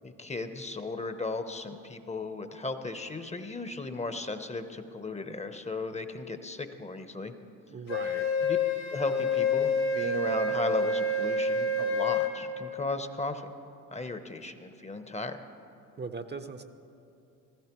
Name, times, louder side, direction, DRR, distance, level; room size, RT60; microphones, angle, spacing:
voice 1, 0.0-7.3 8.4-8.6 8.9-13.5 13.9-15.4, left 3 dB, 15° left, 8 dB, 0.7 m, -36 dB
voice 2, 7.7-8.3 16.0-16.6, right 4 dB, 25° right, 9 dB, 0.6 m, -39 dB
Wind instrument woodwind instrument, 7.9-12.3, left 2 dB, 70° left, 1.8 m, -28 dB
15.5 x 15.5 x 3.0 m, 2.7 s
hypercardioid pair, 65°, 40 cm